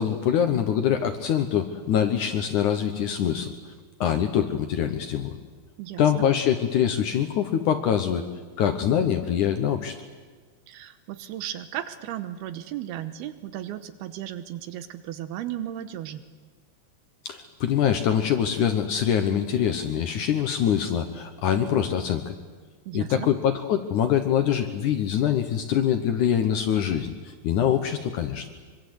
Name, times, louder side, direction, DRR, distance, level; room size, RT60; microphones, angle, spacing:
voice 1, 0.0-3.5 4.0-5.3 6.0-8.3 8.6-9.9 17.3-22.3 22.9-28.5, left 9 dB, 65° left, 7 dB, 2.1 m, -24 dB
voice 2, 5.8-6.3 10.7-16.2 22.9-23.3, right 12 dB, 80° right, 11 dB, 2.9 m, -35 dB
24.5 x 24.0 x 8.0 m, 1.5 s
omnidirectional pair, 4.5 m